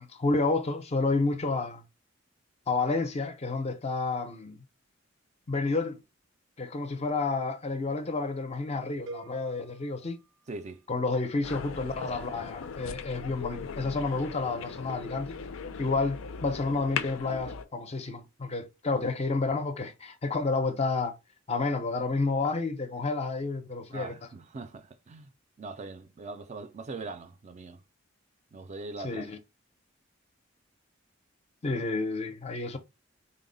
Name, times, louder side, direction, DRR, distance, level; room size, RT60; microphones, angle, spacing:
voice 1, 0.0-1.8 2.7-4.6 5.5-6.0 6.6-10.2 10.9-15.3 15.8-21.1 21.5-24.1 29.0-29.4 31.6-32.8, left 3 dB, 30° left, 0.5 m, -30 dB
sound 1, 9.1-11.1, right 4 dB, 90° right, 0.6 m, -47 dB
voice 2, 10.5-10.8 23.9-25.3 25.6-27.8 28.5-29.3, right 3 dB, 35° right, 0.4 m, -41 dB
sound 2, 11.4-17.6, left 6 dB, 85° left, 0.4 m, -39 dB
3.9 x 2.1 x 3.8 m
head